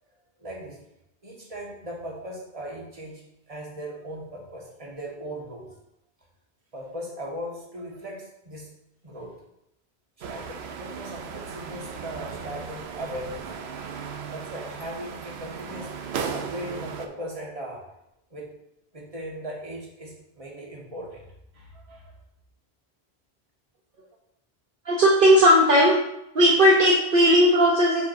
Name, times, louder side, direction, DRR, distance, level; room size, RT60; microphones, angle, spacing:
voice 1, 0.4-0.8 1.2-5.7 6.7-8.7 9.0-9.3 10.2-13.5 14.3-15.9 16.3-17.8 18.3-18.5 18.9-21.2 21.5-22.1, equal, 35° right, -2 dB, 1.5 m, -38 dB
sound 1, 10.2-17.1, right 6 dB, 85° right, 0.9 m, -36 dB
voice 2, 24.8-26.0 26.3-28.1, equal, 60° right, -2 dB, 1.0 m, -17 dB
8.4 x 4.7 x 2.7 m, 0.82 s
omnidirectional pair, 1.0 m